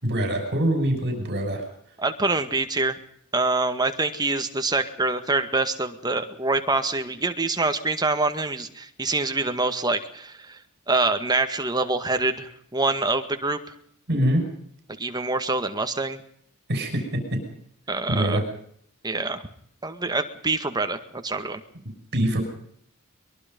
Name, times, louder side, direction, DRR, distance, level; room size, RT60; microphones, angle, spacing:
voice 1, 0.0-1.6 14.1-14.4 16.7-17.0 18.1-18.4 22.1-22.4, right 1 dB, 50° right, 5 dB, 6.4 m, -23 dB
voice 2, 2.0-3.0 3.3-10.6 10.9-13.6 15.0-16.2 17.9-18.4 19.0-19.4 19.8-21.6, right 3 dB, 20° right, 8 dB, 2.0 m, -25 dB
23.0 x 22.5 x 5.4 m, 0.65 s
head